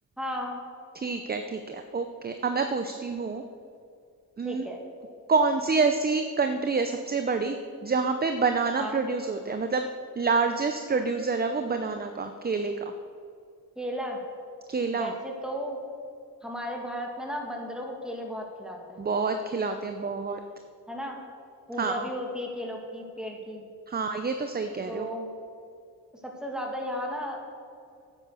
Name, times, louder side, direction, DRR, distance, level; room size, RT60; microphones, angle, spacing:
voice 1, 0.2-0.6 4.4-4.8 8.8-9.0 13.8-14.2 14.9-15.8 16.4-19.1 20.9-21.2 21.7-23.7 24.9-25.3 26.2-27.4, equal, ahead, 0 dB, 2.3 m, -34 dB
voice 2, 0.9-3.4 4.4-4.7 5.3-7.6 7.8-9.9 10.2-12.7 14.7-15.1 19.0-20.4 21.8-22.0 23.9-25.1, right 4 dB, 25° right, 7 dB, 0.7 m, -27 dB
9.6 x 9.1 x 6.9 m, 2.4 s
cardioid pair, 90°, 36 cm